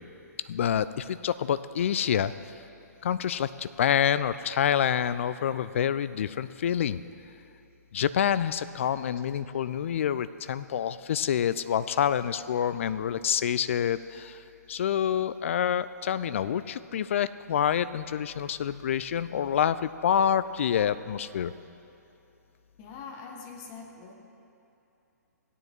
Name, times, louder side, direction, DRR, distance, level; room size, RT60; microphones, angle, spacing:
voice 1, 0.5-2.3 3.0-7.0 7.9-14.4 14.7-21.5, left 9 dB, 45° left, 14 dB, 0.3 m, -27 dB
voice 2, 22.8-24.1, left 5 dB, 30° left, 1 dB, 1.3 m, -43 dB
17.0 x 9.7 x 3.0 m, 2.8 s
figure-of-eight pair, 125°, 9 cm